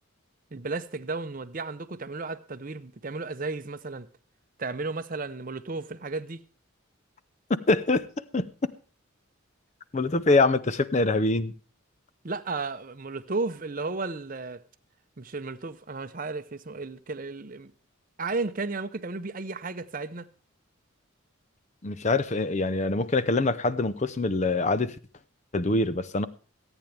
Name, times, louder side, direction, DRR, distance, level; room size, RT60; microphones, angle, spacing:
voice 1, 0.5-4.1 4.6-6.4 12.2-14.6 15.2-17.7 18.2-20.3, right 3 dB, 40° right, 0.7 m, -34 dB
voice 2, 7.7-8.0 8.3-8.7 9.9-11.5 21.8-25.0 25.5-26.3, left 3 dB, 30° left, 0.6 m, -24 dB
25.5 x 9.0 x 3.4 m
head